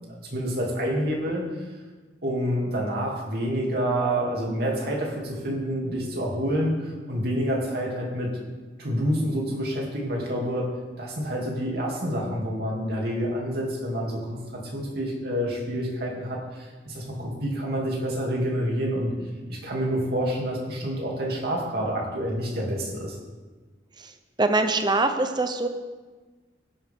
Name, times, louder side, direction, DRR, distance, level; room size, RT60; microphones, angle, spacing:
voice 1, 0.1-1.4 2.2-8.3 8.8-10.7 11.0-19.1 19.5-23.2, equal, 60° right, -2 dB, 2.9 m, -28 dB
voice 2, 24.4-25.7, right 2 dB, 25° right, 7 dB, 0.9 m, -23 dB
16.0 x 11.0 x 3.7 m, 1.3 s
head